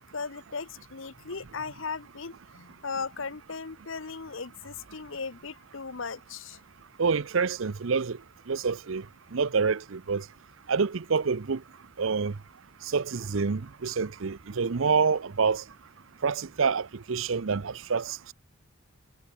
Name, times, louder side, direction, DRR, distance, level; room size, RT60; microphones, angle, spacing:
voice 1, 0.0-6.6, left 4 dB, 60° left, 1.0 m, -37 dB
voice 2, 7.0-8.2 8.5-9.0 9.3-10.2 10.7-11.6 12.0-12.3 12.9-15.6 16.2-18.3, right 5 dB, 65° right, 0.6 m, -27 dB
head